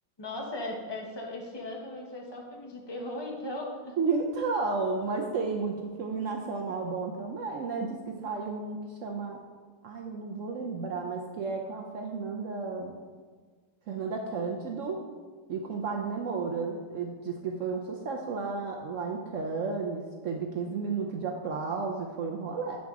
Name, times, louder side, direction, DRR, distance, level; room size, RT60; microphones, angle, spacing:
voice 1, 0.2-3.9, left 1 dB, 40° left, 0 dB, 0.3 m, -37 dB
voice 2, 4.0-8.0 8.2-9.4 9.8-12.9 13.9-15.0 15.5-22.8, right 4 dB, 75° right, 1 dB, 0.7 m, -32 dB
7.6 x 5.1 x 3.5 m, 1.5 s
omnidirectional pair, 1.9 m